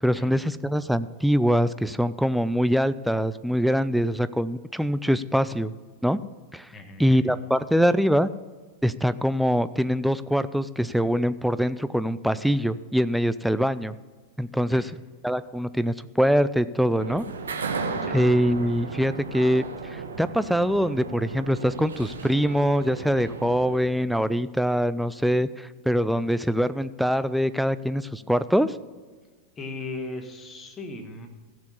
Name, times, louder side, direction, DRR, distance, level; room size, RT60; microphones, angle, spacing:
voice 1, 0.0-5.7 6.0-6.2 6.5-6.7 7.0-8.3 8.8-13.9 14.4-14.9 15.2-17.2 18.1-19.6 19.9-28.7, equal, ahead, 14 dB, 0.4 m, -23 dB
voice 2, 6.7-7.3 14.7-14.9 18.0-18.2 29.6-31.3, left 2 dB, 20° left, 5 dB, 1.6 m, -37 dB
sound 1, 17.0-23.8, right 4 dB, 70° right, 1.1 m, -35 dB
15.5 x 7.4 x 5.5 m, 1.4 s
figure-of-eight pair, 90°, 0 cm